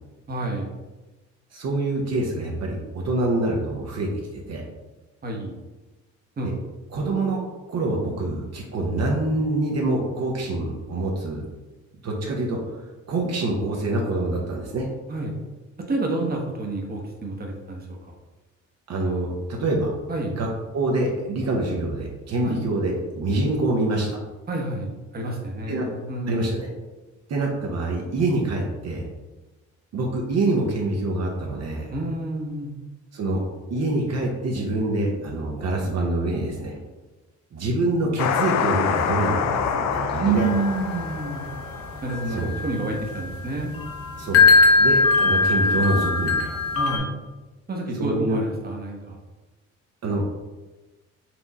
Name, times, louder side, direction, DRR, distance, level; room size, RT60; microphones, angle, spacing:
voice 1, 0.3-0.7 5.2-5.5 6.4-6.5 15.1-15.3 15.9-18.0 20.1-20.4 22.4-22.6 24.5-24.9 25.1-26.5 31.9-32.7 40.2-41.4 42.0-43.8 46.7-47.1 47.7-49.2, right 3 dB, 30° right, 0 dB, 0.9 m, -28 dB
voice 2, 1.5-4.6 6.4-6.5 6.9-11.4 12.0-12.8 13.1-14.9 18.9-19.9 20.3-20.5 20.7-24.2 25.7-25.9 26.3-26.7 27.3-29.0 29.9-31.9 33.1-36.7 37.5-40.5 42.3-42.5 44.2-44.5 44.8-46.6 47.9-48.4 50.0-50.2, right 2 dB, 60° right, -1 dB, 0.8 m, -25 dB
sound 1, 38.2-42.5, left 7 dB, 65° left, 0.4 m, -26 dB
sound 2, 40.4-47.0, left 3 dB, 50° left, 0.9 m, -21 dB
4.4 x 2.4 x 4.0 m, 1.2 s
cardioid pair, 90°, 30 cm